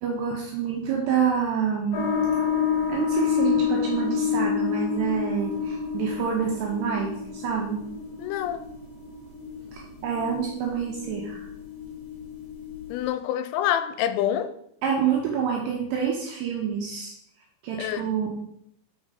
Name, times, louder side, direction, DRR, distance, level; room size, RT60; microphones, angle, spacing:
voice 1, 0.0-2.1 2.9-7.9 9.7-11.4 14.8-17.1 17.6-18.4, right 7 dB, 75° right, 2.5 m, -27 dB
sound 1, 1.9-13.0, left 7 dB, 60° left, 1.5 m, -29 dB
voice 2, 8.2-8.7 12.9-14.5 17.8-18.1, left 11 dB, 85° left, 3.2 m, -27 dB
6.5 x 5.7 x 4.9 m
omnidirectional pair, 5.9 m